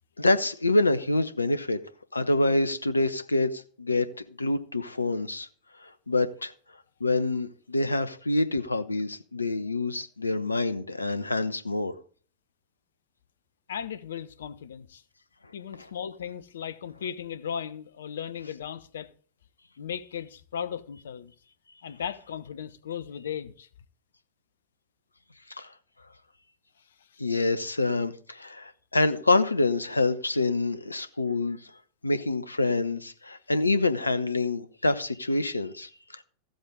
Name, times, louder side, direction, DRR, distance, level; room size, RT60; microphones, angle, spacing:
voice 1, 0.2-1.8 2.1-5.5 5.8-6.5 7.0-11.9 25.5-25.7 27.2-31.6 32.0-36.2, left 2 dB, 80° left, 0.9 m, -26 dB
voice 2, 13.7-15.0 15.5-19.1 19.8-21.3 21.8-23.7 27.0-27.2, left 8 dB, 65° left, 1.1 m, -36 dB
15.0 x 7.8 x 3.8 m
figure-of-eight pair, 90°, 0 cm